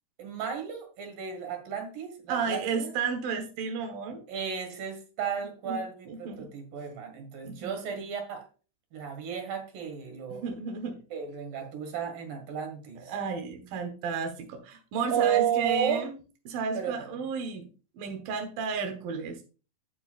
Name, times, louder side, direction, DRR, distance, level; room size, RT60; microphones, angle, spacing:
voice 1, 0.2-2.9 4.3-8.5 8.9-10.4 11.1-13.1 15.1-16.0 16.7-17.1, right 8 dB, 55° right, 6 dB, 3.0 m, -33 dB
voice 2, 2.3-4.2 5.7-6.5 7.5-7.7 10.3-11.0 13.1-16.1 16.5-17.7 18.0-19.4, right 5 dB, 80° right, 5 dB, 2.0 m, -33 dB
11.5 x 8.5 x 2.4 m, 0.35 s
omnidirectional pair, 5.7 m